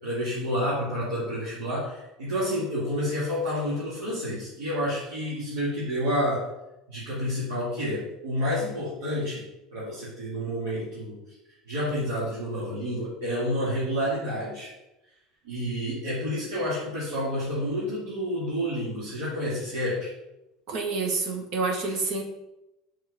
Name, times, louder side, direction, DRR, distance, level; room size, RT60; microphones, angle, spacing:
voice 1, 0.0-6.5 6.9-9.4 9.7-11.2 11.7-14.7 15.4-20.1, equal, 80° right, -9 dB, 2.4 m, -29 dB
voice 2, 20.7-22.2, right 3 dB, 60° right, 2 dB, 1.6 m, -28 dB
6.2 x 4.8 x 5.3 m, 0.92 s
hypercardioid pair, 75°, 0 cm